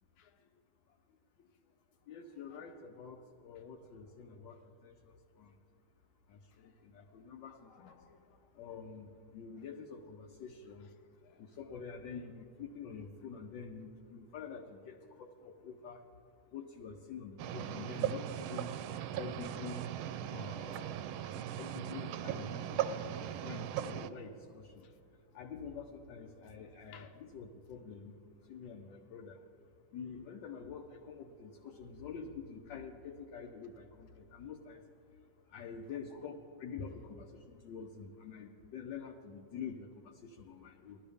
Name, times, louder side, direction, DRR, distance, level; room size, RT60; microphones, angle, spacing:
voice 1, 0.2-0.5 0.9-1.6 2.5-2.7 6.5-7.1 7.4-8.5 11.2-11.6 21.3-21.4 24.8-25.0 26.9-27.1 35.9-36.2 36.8-36.9, left 3 dB, 85° left, 6 dB, 1.7 m, -55 dB
voice 2, 2.1-5.6 6.3-8.0 8.5-10.9 11.4-16.0 16.5-18.8 19.1-19.9 20.3-21.0 21.5-24.8 25.3-28.2 28.5-29.4 29.9-34.8 35.5-41.0, left 6 dB, 70° left, 2 dB, 1.3 m, -47 dB
sound 1, 17.4-24.1, right 10 dB, 85° right, 1.4 m, -38 dB
18.5 x 12.5 x 3.5 m, 2.7 s
omnidirectional pair, 2.2 m